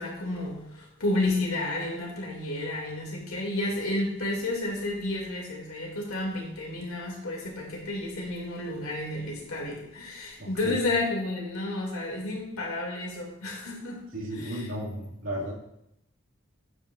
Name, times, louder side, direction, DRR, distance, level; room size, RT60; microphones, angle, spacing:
voice 1, 0.0-14.0 14.3-14.6, left 2 dB, 85° left, -1 dB, 2.2 m, -31 dB
voice 2, 10.4-10.8 14.1-15.5, equal, 85° right, -4 dB, 2.0 m, -34 dB
8.8 x 8.1 x 2.4 m, 0.80 s
head